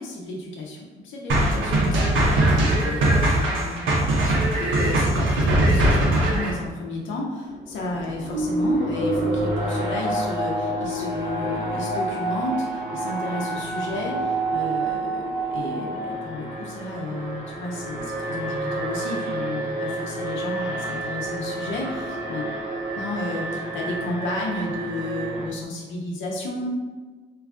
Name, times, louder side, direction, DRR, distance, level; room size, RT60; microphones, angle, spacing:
voice 1, 0.0-22.5 23.0-26.7, left 2 dB, 75° left, -2 dB, 0.8 m, -32 dB
sound 1, 1.3-6.5, right 1 dB, 75° right, 0.9 m, -20 dB
Alarm, 7.5-25.5, right 2 dB, 50° right, 1.5 m, -28 dB
3.1 x 2.4 x 3.6 m, 1.4 s
cardioid pair, 90°, 20 cm